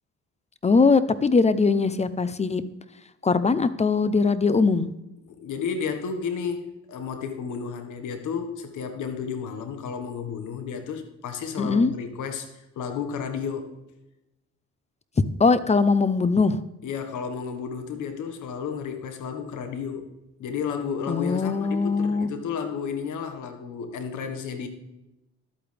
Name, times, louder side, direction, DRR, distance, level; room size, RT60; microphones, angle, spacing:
voice 1, 0.6-2.6 3.2-4.9 11.6-11.9 15.4-16.6 21.1-22.3, left 4 dB, 20° left, 0.6 m, -21 dB
voice 2, 5.2-13.8 16.8-20.1 20.4-24.7, left 6 dB, 80° left, 1.6 m, -32 dB
11.5 x 8.7 x 3.4 m
cardioid pair, 90°, 30 cm